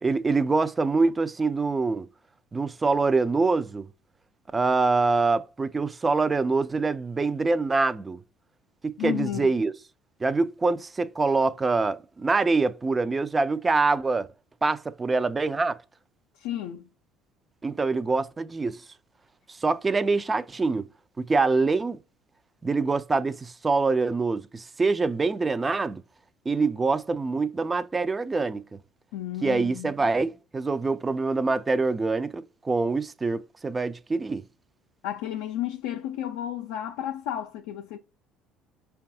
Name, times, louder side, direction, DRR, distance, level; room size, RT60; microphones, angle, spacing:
voice 1, 0.0-2.1 2.5-3.9 4.5-8.2 8.8-9.7 10.2-14.3 14.6-15.8 17.6-18.8 19.5-20.9 21.2-22.0 22.6-26.0 26.5-28.6 29.4-34.4, right 3 dB, 25° right, 0.3 m, -25 dB
voice 2, 9.0-9.5 16.4-16.9 29.1-29.9 35.0-38.0, left 11 dB, 80° left, 0.3 m, -32 dB
5.1 x 2.3 x 2.6 m
supercardioid pair, 85°, 0 cm